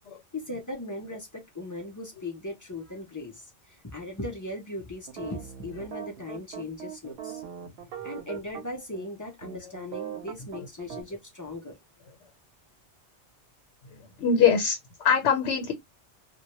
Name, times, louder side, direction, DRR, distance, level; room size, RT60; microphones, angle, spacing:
voice 1, 0.3-7.4 8.0-11.8, left 2 dB, 30° left, 0.4 m, -38 dB
sound 1, 5.1-8.6 8.9-9.1 9.4-11.0, right 9 dB, 65° right, 0.8 m, -40 dB
voice 2, 14.2-15.7, left 6 dB, 80° left, 1.0 m, -23 dB
2.1 x 2.1 x 2.8 m
omnidirectional pair, 1.2 m